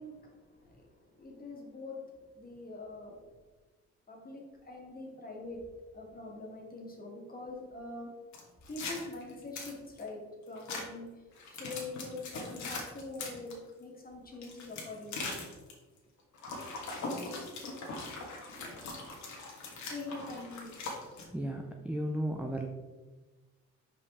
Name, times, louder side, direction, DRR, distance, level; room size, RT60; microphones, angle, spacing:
voice 1, 0.0-3.3 4.1-5.6 5.9-8.1 8.7-11.2 11.6-15.4 18.5-18.8 19.9-20.7, left 2 dB, 30° left, -1 dB, 1.7 m, -44 dB
sound 1, 8.3-10.1 10.6-10.8 11.4-13.5 14.3-15.7 16.3-21.2, left 3 dB, 70° left, 1.5 m, -40 dB
voice 2, 21.3-22.7, right 1 dB, 5° right, 2 dB, 0.5 m, -34 dB
5.4 x 5.1 x 3.5 m, 1.2 s
cardioid pair, 90°, 30 cm